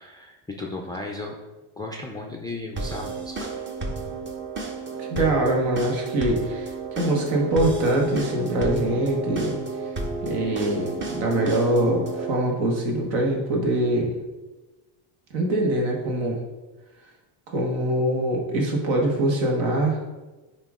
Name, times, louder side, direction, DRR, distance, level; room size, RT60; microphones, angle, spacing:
voice 1, 0.0-1.4 1.8-3.5, left 2 dB, 10° left, -1 dB, 0.3 m, -35 dB
sound 1, 2.8-12.4, right 3 dB, 25° right, 0.8 m, -32 dB
voice 2, 5.0-9.6 10.2-14.1 15.3-16.4 17.5-20.0, right 1 dB, 70° right, 0 dB, 1.7 m, -23 dB
8.7 x 3.0 x 3.6 m, 1.1 s
cardioid pair, 130°, 47 cm